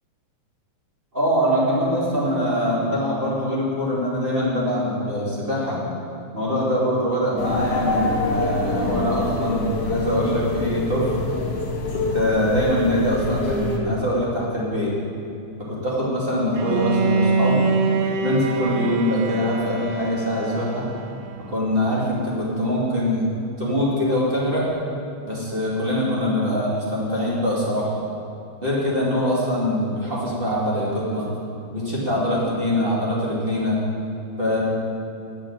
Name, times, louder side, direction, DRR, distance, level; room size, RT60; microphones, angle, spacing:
voice 1, 1.1-5.8 6.3-11.2 11.9-15.0 15.6-17.7 18.2-20.9 21.4-23.3 23.6-24.7 25.2-28.0 28.6-31.3 31.7-33.8 34.4-34.6, equal, 20° right, -6 dB, 2.4 m, -23 dB
sound 1, 7.4-13.8, left 2 dB, 80° left, 3.0 m, -25 dB
Bowed string instrument, 16.5-21.5, right 4 dB, 70° right, 1.7 m, -24 dB
9.8 x 7.0 x 8.7 m, 2.6 s
omnidirectional pair, 3.5 m